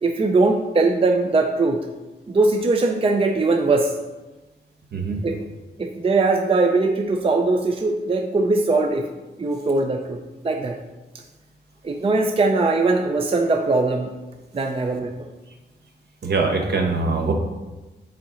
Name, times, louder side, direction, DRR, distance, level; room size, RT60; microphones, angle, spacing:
voice 1, 0.0-1.9 2.3-3.9 5.2-5.5 5.8-9.1 9.4-10.2 10.4-10.8 11.8-14.1 14.5-15.1, right 3 dB, 30° right, 4 dB, 0.5 m, -20 dB
voice 2, 16.2-17.3, right 4 dB, 60° right, 2 dB, 1.0 m, -22 dB
5.6 x 3.8 x 5.6 m, 1.1 s
cardioid pair, 80°, 19 cm